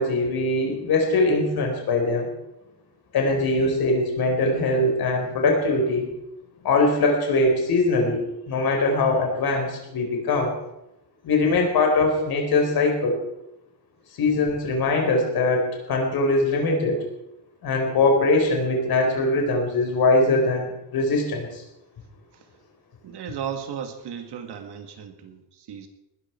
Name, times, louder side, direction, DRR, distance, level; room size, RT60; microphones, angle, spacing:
voice 1, 0.0-2.3 3.1-6.1 6.6-8.2 8.5-10.6 11.2-13.2 14.2-17.0 17.6-21.6, left 2 dB, 60° left, 2 dB, 4.6 m, -22 dB
voice 2, 23.0-25.9, right 8 dB, 70° right, 6 dB, 2.4 m, -35 dB
19.5 x 13.0 x 4.6 m, 0.89 s
cardioid pair, 175°, 41 cm